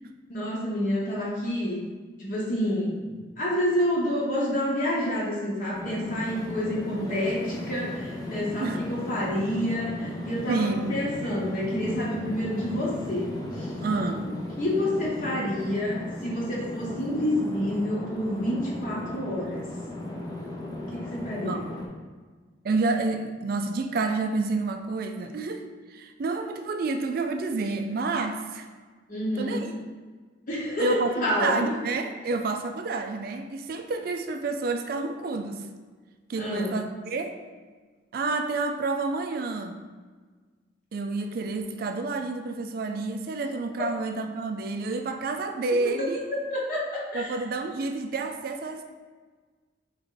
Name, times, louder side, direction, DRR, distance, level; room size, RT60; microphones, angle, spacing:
voice 1, 0.3-1.8 2.2-13.7 14.6-19.7 20.9-21.7 29.1-29.7 30.5-31.6 36.4-36.8 43.8-43.9 46.5-47.3, left 1 dB, 45° left, -5 dB, 0.9 m, -28 dB
sound 1, 5.7-21.9, left 1 dB, 20° left, 0.5 m, -36 dB
voice 2, 10.5-11.0 13.8-14.3 21.3-21.6 22.6-28.7 29.4-29.7 30.8-31.1 31.4-35.7 36.3-37.4 38.1-39.8 40.9-46.2 47.1-48.8, right 3 dB, 50° right, 6 dB, 0.3 m, -29 dB
3.6 x 3.4 x 3.8 m, 1.4 s
head